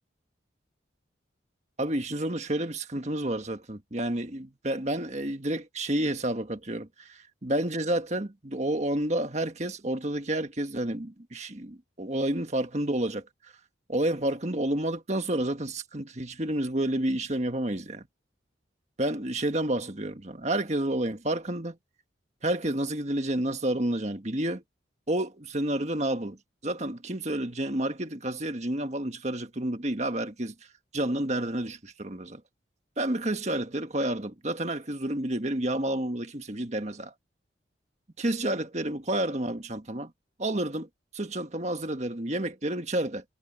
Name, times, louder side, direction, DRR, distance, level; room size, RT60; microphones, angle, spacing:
voice 1, 1.8-13.2 13.9-18.1 19.0-21.8 22.4-24.6 25.1-26.4 26.6-30.5 30.9-32.4 33.0-37.1 38.2-40.1 40.4-40.9 41.1-43.2, right 1 dB, 35° right, 1.6 m, -30 dB
head